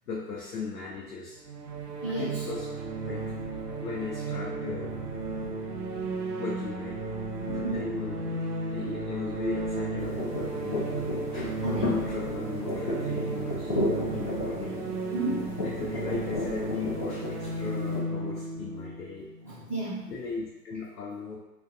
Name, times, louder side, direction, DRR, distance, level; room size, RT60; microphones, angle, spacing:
voice 1, 0.1-1.4 2.1-2.7 3.0-3.2 3.8-5.3 6.4-7.0 7.5-8.4 8.7-11.1 11.7-14.9 15.6-19.3 20.1-21.4, left 4 dB, 70° left, -4 dB, 0.7 m, -37 dB
sound 1, 1.4-20.1, right 3 dB, 80° right, 0.6 m, -34 dB
voice 2, 2.0-2.5 7.6-7.8 11.6-11.9 15.1-15.6 19.4-20.1, right 2 dB, 5° left, -13 dB, 0.7 m, -32 dB
sound 2, 10.0-18.0, left 2 dB, 35° left, 0.4 m, -34 dB
2.5 x 2.2 x 2.5 m, 0.95 s
figure-of-eight pair, 115°, 48 cm